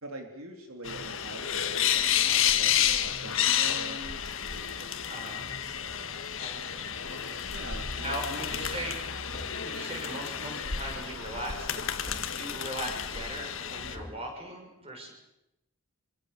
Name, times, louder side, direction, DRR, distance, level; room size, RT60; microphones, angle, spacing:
voice 1, 0.0-6.2 7.4-8.7, right 1 dB, 80° right, 3 dB, 3.7 m, -45 dB
sound 1, 0.8-14.0, left 9 dB, 65° left, 1.8 m, -30 dB
voice 2, 5.1-5.4 6.4-7.5 8.0-9.0 9.6-15.1, right 1 dB, 25° right, 1 dB, 6.9 m, -39 dB
sound 2, 9.3-9.8 12.0-12.5 13.9-14.3, equal, 10° left, 2.2 m, -45 dB
27.0 x 23.0 x 7.0 m, 0.88 s
head